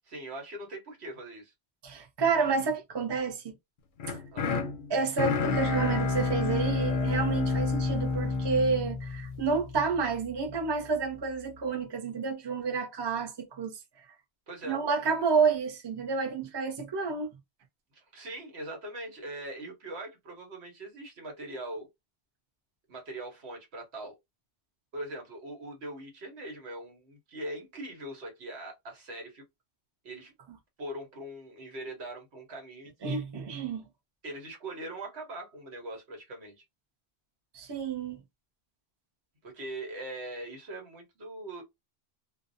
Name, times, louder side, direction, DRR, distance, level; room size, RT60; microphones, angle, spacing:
voice 1, 0.1-1.5 4.3-4.5 14.5-14.8 17.9-21.9 22.9-24.2 24.9-29.4 30.0-30.3 30.8-33.2 34.2-36.6 39.4-41.6, right 1 dB, 80° right, 1.3 m, -41 dB
voice 2, 1.8-3.5 4.1-4.2 4.9-13.8 14.7-17.3 33.0-33.8 37.5-38.2, right 5 dB, 30° right, 0.5 m, -30 dB
sound 1, 4.0-10.1, left 3 dB, 60° left, 0.6 m, -29 dB
2.6 x 2.0 x 2.5 m
omnidirectional pair, 1.1 m